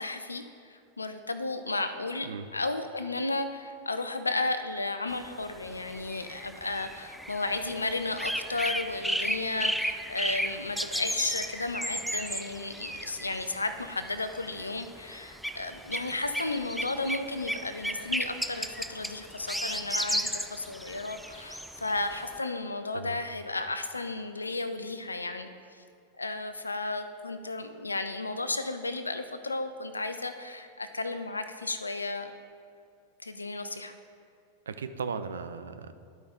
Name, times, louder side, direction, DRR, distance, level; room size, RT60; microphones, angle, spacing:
voice 1, 0.0-25.8 26.2-32.3 33.2-33.9, left 2 dB, 80° left, 9 dB, 0.5 m, -34 dB
sound 1, 5.1-22.4, equal, ahead, 0.3 m, -35 dB
voice 2, 34.7-35.9, right 5 dB, 70° right, 10 dB, 0.4 m, -37 dB
12.0 x 5.0 x 3.8 m, 2.3 s
figure-of-eight pair, 90°, 0 cm